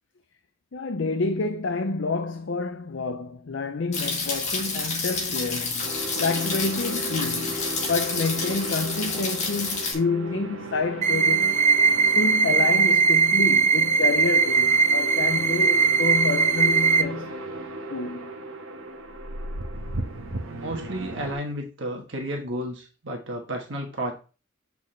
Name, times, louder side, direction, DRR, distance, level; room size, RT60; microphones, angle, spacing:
voice 1, 0.7-5.9 6.2-11.7 12.1-17.4 17.9-18.4, left 3 dB, 65° left, 0.6 m, -28 dB
sound 1, 3.9-9.9, left 4 dB, 35° left, 2.0 m, -29 dB
sound 2, 5.8-21.3, right 1 dB, 85° right, 1.2 m, -36 dB
sound 3, 11.0-17.0, right 5 dB, 35° right, 0.6 m, -20 dB
voice 2, 20.6-24.1, right 1 dB, 65° right, 1.4 m, -32 dB
8.2 x 6.1 x 3.3 m
head